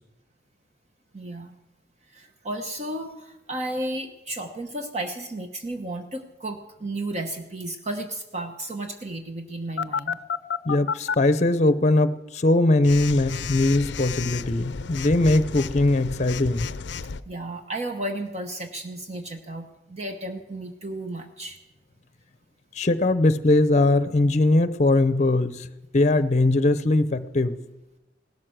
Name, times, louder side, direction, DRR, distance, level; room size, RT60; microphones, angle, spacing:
voice 1, 1.1-1.5 2.1-10.2 17.2-21.6, right 1 dB, 40° right, 5 dB, 1.0 m, -33 dB
Telephone, 9.8-11.1 12.8-17.2, left 6 dB, 85° left, 0.5 m, -31 dB
voice 2, 10.7-16.7 22.8-25.7 25.9-27.6, left 2 dB, 40° left, 14 dB, 0.7 m, -21 dB
17.0 x 12.5 x 6.3 m, 0.96 s
head